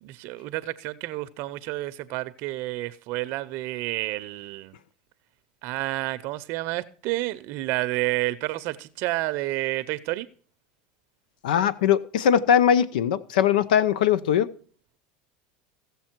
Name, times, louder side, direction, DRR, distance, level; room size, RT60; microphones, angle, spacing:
voice 1, 0.0-4.7 5.6-10.3, right 18 dB, 60° right, 0.6 m, -30 dB
voice 2, 11.4-14.5, left 9 dB, 90° left, 0.7 m, -21 dB
15.5 x 7.0 x 4.5 m
supercardioid pair, 120°, 4 cm